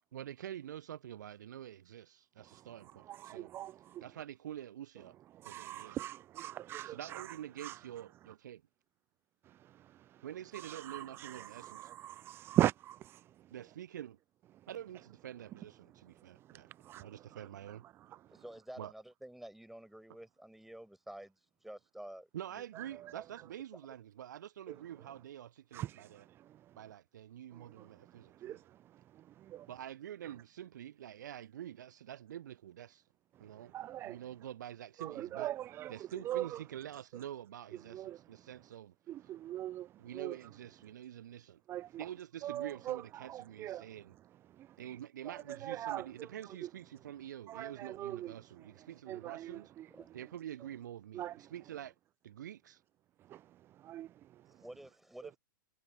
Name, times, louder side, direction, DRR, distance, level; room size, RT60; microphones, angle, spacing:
voice 1, 0.1-3.5 4.0-5.2 5.4-6.0 6.8-8.6 10.2-11.9 13.5-14.2 14.7-16.7 17.0-17.8 18.8-18.9 22.3-26.2 26.8-28.6 29.7-33.0 33.4-33.7 34.0-35.5 35.9-38.9 40.0-41.6 42.0-44.1 44.8-49.7 50.1-52.0 52.2-52.8, right 11 dB, 60° right, 0.7 m, -47 dB
voice 2, 2.4-4.1 5.0-5.1 5.3-7.9 9.4-10.3 10.5-13.5 14.5-14.7 15.8-18.4 22.7-23.2 24.7-25.1 25.7-26.9 27.5-29.7 33.3-34.2 35.0-36.6 37.1-37.2 37.7-38.5 39.1-40.4 41.7-42.1 42.4-46.7 47.5-50.2 51.1-51.5 53.2-54.6 55.2-55.3, right 13 dB, 20° right, 0.4 m, -42 dB
voice 3, 18.3-22.7 49.9-50.1 54.5-55.4, right 1 dB, ahead, 5.2 m, -50 dB
figure-of-eight pair, 110°, 11 cm